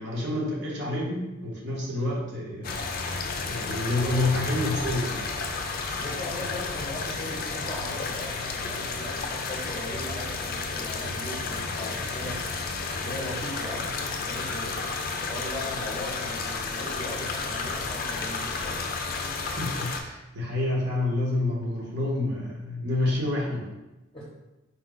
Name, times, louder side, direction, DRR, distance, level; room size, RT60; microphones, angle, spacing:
voice 1, 0.0-2.8 3.5-5.3 19.6-23.7, left 2 dB, 60° right, -3 dB, 1.2 m, -28 dB
sound 1, 2.6-20.0, left 4 dB, 45° left, 0.4 m, -32 dB
voice 2, 5.9-12.4 12.9-14.8 15.3-18.8 24.1-24.2, left 1 dB, 20° left, -6 dB, 0.8 m, -39 dB
4.3 x 2.3 x 3.9 m, 1.0 s
head